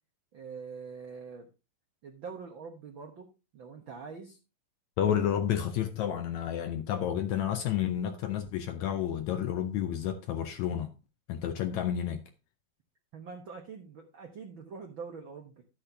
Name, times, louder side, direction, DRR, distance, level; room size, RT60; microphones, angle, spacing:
voice 1, 0.3-1.5 2.0-4.4 13.1-15.6, right 5 dB, 75° right, 1.1 m, -44 dB
voice 2, 5.0-10.9 11.3-12.2, left 10 dB, 75° left, 1.7 m, -30 dB
12.0 x 8.6 x 2.7 m
omnidirectional pair, 4.1 m